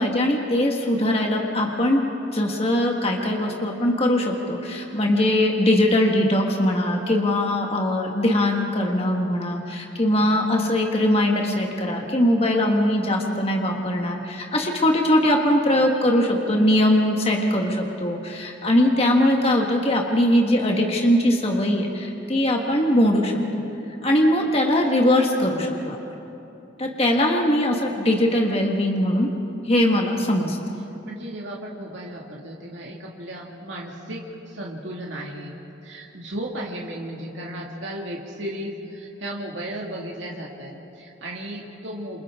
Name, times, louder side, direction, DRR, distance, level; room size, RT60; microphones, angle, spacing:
voice 1, 0.0-2.1 2.3-23.6 24.0-26.0 26.8-29.3 29.6-30.6, left 1 dB, 30° left, 1 dB, 1.5 m, -21 dB
voice 2, 31.1-35.5 35.8-42.2, right 1 dB, 70° right, -2 dB, 2.2 m, -35 dB
28.0 x 27.5 x 3.7 m, 2.9 s
head